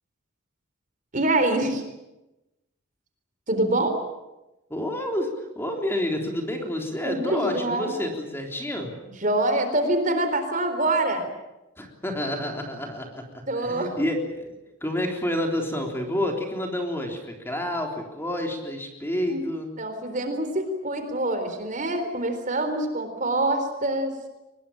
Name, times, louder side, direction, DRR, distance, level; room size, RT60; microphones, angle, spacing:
voice 1, 1.1-1.8 3.5-4.0 7.0-8.0 9.2-11.3 13.5-14.0 19.3-19.4 19.8-24.1, right 2 dB, 40° right, 7 dB, 4.0 m, -25 dB
voice 2, 4.7-8.9 11.8-13.3 13.6-14.5 14.8-19.7, left 1 dB, 10° left, 2 dB, 3.6 m, -29 dB
24.0 x 21.0 x 8.8 m, 0.98 s
head